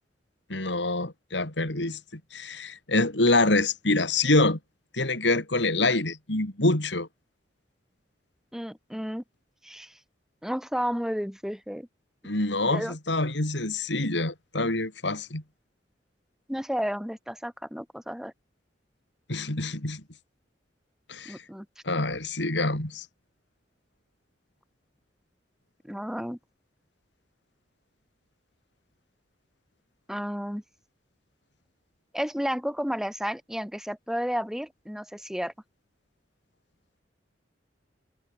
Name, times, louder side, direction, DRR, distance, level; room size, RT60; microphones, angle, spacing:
voice 1, 0.5-2.0 2.3-4.6 4.9-7.1 12.2-15.4 19.3-20.0 21.1-21.4 21.9-23.1, left 2 dB, 70° left, 4.0 m, -26 dB
voice 2, 8.5-9.2 9.6-9.9 10.4-11.9 12.7-13.0 16.5-18.3 21.3-21.7 25.8-26.4 30.1-30.6 32.1-35.5, equal, 5° right, 3.6 m, -32 dB
head